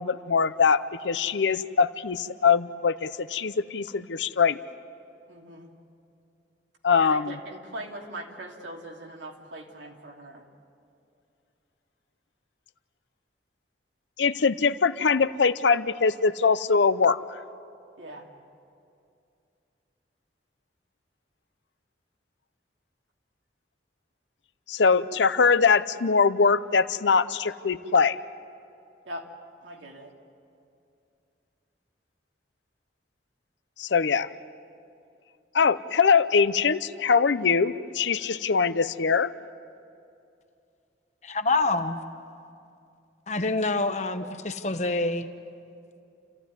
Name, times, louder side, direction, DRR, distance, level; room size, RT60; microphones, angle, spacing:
voice 1, 0.0-4.6 6.8-7.4 14.2-17.2 24.7-28.2 33.8-34.3 35.5-39.3, left 5 dB, 75° left, 0.7 m, -22 dB
voice 2, 5.3-5.7 7.0-10.4 18.0-18.3 29.0-29.3 29.6-30.1, right 1 dB, 85° right, 2.8 m, -41 dB
voice 3, 41.2-42.0 43.3-45.3, left 2 dB, 40° left, 1.0 m, -26 dB
29.0 x 15.0 x 9.6 m
head